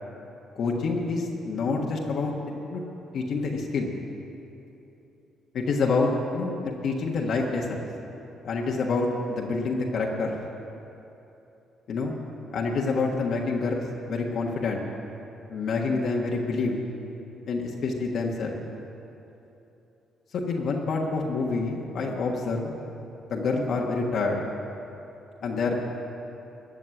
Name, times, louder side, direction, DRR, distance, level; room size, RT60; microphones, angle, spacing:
voice 1, 0.5-2.3 2.7-2.8 3.1-3.9 5.5-7.8 8.4-10.3 11.9-12.1 12.5-14.8 15.5-16.8 17.5-18.6 20.5-22.7 23.3-24.4 25.4-25.8, left 3 dB, 60° left, -1 dB, 1.4 m, -27 dB
15.5 x 6.6 x 9.9 m, 2.9 s
cardioid pair, 95°, 0 cm